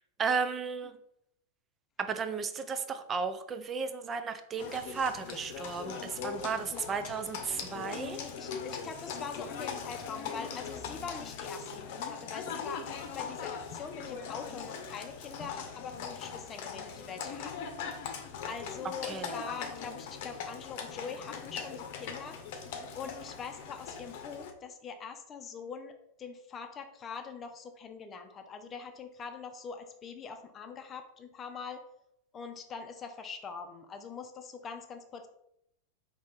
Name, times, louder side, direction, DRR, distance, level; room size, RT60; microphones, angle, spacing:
voice 1, 0.2-1.0 2.0-8.2 19.1-19.3, right 5 dB, 25° right, 9 dB, 0.5 m, -34 dB
Livestock farm animals working animals, 4.6-24.5, left 6 dB, 60° left, 0.7 m, -40 dB
voice 2, 6.4-7.1 7.9-17.8 18.5-22.4 22.9-31.8 32.3-35.3, left 5 dB, 25° left, 6 dB, 0.6 m, -43 dB
4.2 x 2.9 x 3.6 m, 0.77 s
hypercardioid pair, 115°, 0 cm